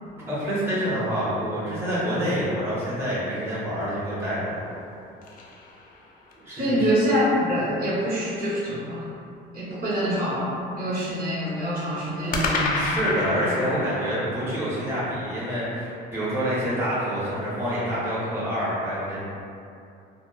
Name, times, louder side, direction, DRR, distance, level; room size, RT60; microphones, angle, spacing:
voice 1, 0.3-4.6 6.4-6.9 12.1-19.2, equal, 10° right, -10 dB, 0.6 m, -27 dB
sound 1, 4.6-6.5 12.3-16.6, left 3 dB, 45° left, 0.4 m, -32 dB
voice 2, 6.5-9.1 9.5-12.8, equal, 50° right, -8 dB, 0.9 m, -25 dB
2.8 x 2.1 x 2.3 m, 2.5 s
cardioid pair, 105°, 19 cm